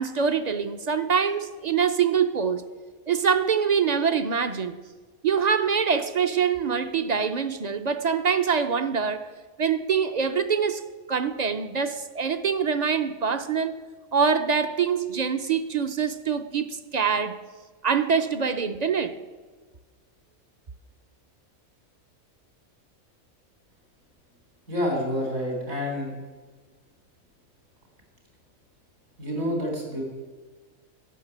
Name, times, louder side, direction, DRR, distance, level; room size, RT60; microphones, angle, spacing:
voice 1, 0.0-2.7 3.1-4.8 5.2-9.3 9.6-10.8 11.1-13.8 14.1-17.4 17.8-19.2, right 6 dB, 50° right, 0.5 m, -24 dB
voice 2, 24.7-26.1 29.2-30.0, equal, 80° right, 4.3 m, -28 dB
13.0 x 6.6 x 9.8 m
omnidirectional pair, 1.4 m